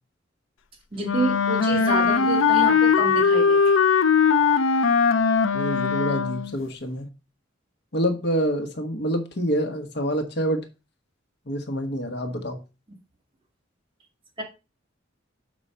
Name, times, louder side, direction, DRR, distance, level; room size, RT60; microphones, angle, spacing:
voice 1, 0.9-3.6 14.4-14.5, right 3 dB, 30° right, 0 dB, 2.2 m, -28 dB
Wind instrument woodwind instrument, 1.0-6.6, left 6 dB, 85° left, 0.6 m, -20 dB
voice 2, 5.5-7.1 7.9-10.7 11.5-12.6, equal, 55° left, 6 dB, 1.3 m, -27 dB
6.3 x 4.9 x 5.5 m, 0.29 s
head